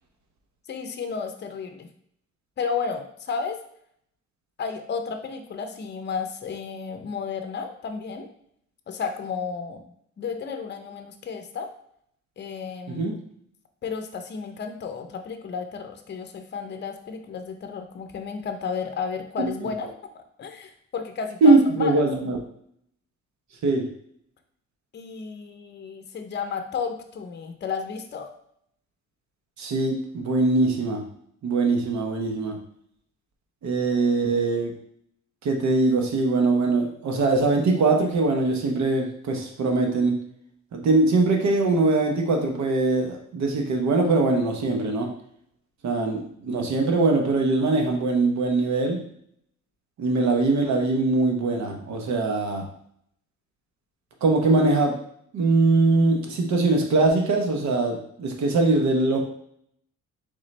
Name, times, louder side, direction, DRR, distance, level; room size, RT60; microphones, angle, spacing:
voice 1, 0.7-1.9 2.6-3.6 4.6-8.3 8.9-9.9 10.2-11.7 12.4-13.2 13.8-22.1 24.9-28.3, left 5 dB, 35° left, 6 dB, 0.6 m, -32 dB
voice 2, 21.4-22.4 23.6-23.9 29.6-31.0 31.4-32.6 33.6-34.7 35.4-40.2 40.7-45.1 45.8-49.0 50.0-52.6 54.2-54.9 55.3-59.2, right 3 dB, 65° right, 2 dB, 1.0 m, -22 dB
3.8 x 3.7 x 3.2 m, 0.69 s
cardioid pair, 90°, 30 cm